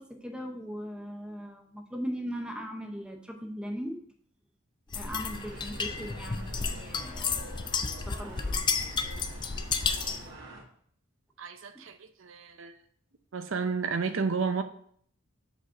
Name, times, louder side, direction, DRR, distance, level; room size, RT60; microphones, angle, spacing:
voice 1, 0.0-4.0 4.9-7.5 7.8-8.6, equal, 5° right, 0.7 m, -39 dB
sound 1, 4.9-10.3, left 5 dB, 20° left, 0.3 m, -32 dB
sound 2, 4.9-10.6, right 1 dB, 55° right, 1.7 m, -46 dB
voice 2, 9.9-10.2 11.4-12.7 13.3-14.6, right 5 dB, 70° right, 0.6 m, -32 dB
5.1 x 4.1 x 5.7 m
head